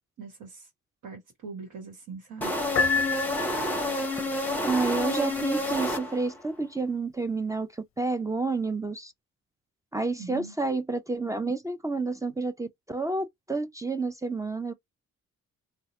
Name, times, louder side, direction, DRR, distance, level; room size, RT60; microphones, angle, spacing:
voice 1, 0.2-0.7 1.0-2.5 10.1-10.5, right 4 dB, 75° right, 1.2 m, -42 dB
sound 1, 2.4-6.5, left 1 dB, 5° left, 0.8 m, -29 dB
Piano, 2.8-4.0, left 5 dB, 45° left, 0.5 m, -27 dB
voice 2, 4.6-9.1 9.9-14.7, right 3 dB, 10° right, 0.4 m, -29 dB
2.7 x 2.1 x 3.0 m
cardioid pair, 90°, 30 cm